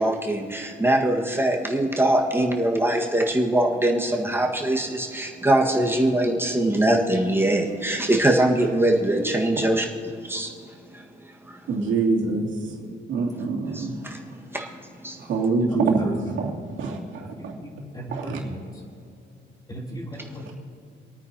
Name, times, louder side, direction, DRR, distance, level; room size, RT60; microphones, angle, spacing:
voice 1, 0.0-10.5 10.9-11.6 11.9-12.0 13.4-15.5 20.2-20.6, right 1 dB, 10° right, 0 dB, 1.7 m, -23 dB
voice 2, 11.7-12.5 13.1-13.9 15.3-17.5 18.1-18.4, right 4 dB, 75° right, -1 dB, 2.6 m, -25 dB
voice 3, 17.4-18.6 19.7-20.4, right 1 dB, 20° left, -2 dB, 3.4 m, -36 dB
27.0 x 9.2 x 2.9 m, 2.5 s
cardioid pair, 90°, 20 cm